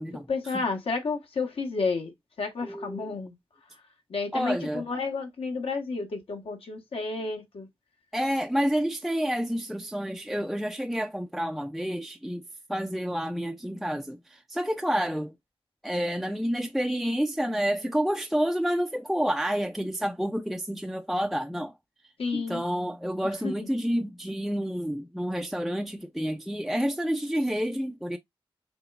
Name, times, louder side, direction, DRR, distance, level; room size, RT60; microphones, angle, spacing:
voice 1, 0.1-2.1 2.4-3.3 4.1-7.7 22.2-22.6 23.4-23.7, left 4 dB, 75° left, 1.3 m, -31 dB
voice 2, 2.6-3.2 4.3-4.8 8.1-15.4 15.8-21.8 22.3-28.2, equal, ahead, 0.4 m, -29 dB
5.9 x 3.1 x 2.4 m
wide cardioid pair, 85°, 10 cm